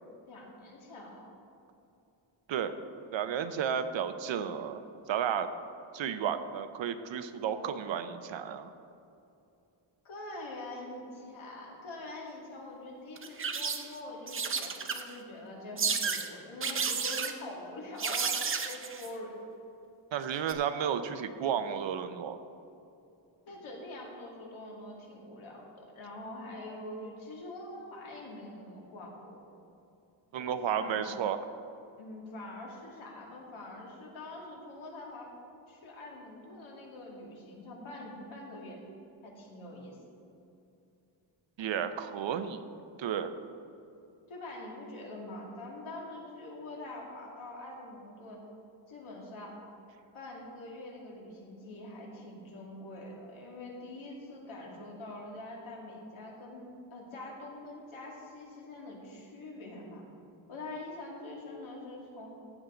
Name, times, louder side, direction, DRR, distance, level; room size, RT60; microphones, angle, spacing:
voice 1, 0.2-1.3 10.0-19.4 23.5-29.4 30.3-31.0 32.0-35.3 35.7-38.8 39.2-40.0 44.3-48.4 48.9-49.6 50.1-60.0 60.5-62.4, left 2 dB, 80° left, -2 dB, 2.5 m, -44 dB
voice 2, 3.1-4.8 5.1-5.5 5.9-8.7 20.1-22.4 30.3-31.4 41.6-42.7 43.0-43.3, right 8 dB, 70° right, 10 dB, 0.7 m, -32 dB
sound 1, 13.2-14.0 14.3-15.2 15.8-16.3 16.6-17.3 18.0-19.1 20.4-20.5, right 5 dB, 30° right, 0.5 m, -32 dB
15.0 x 8.2 x 3.8 m, 2.6 s
wide cardioid pair, 180°, 48 cm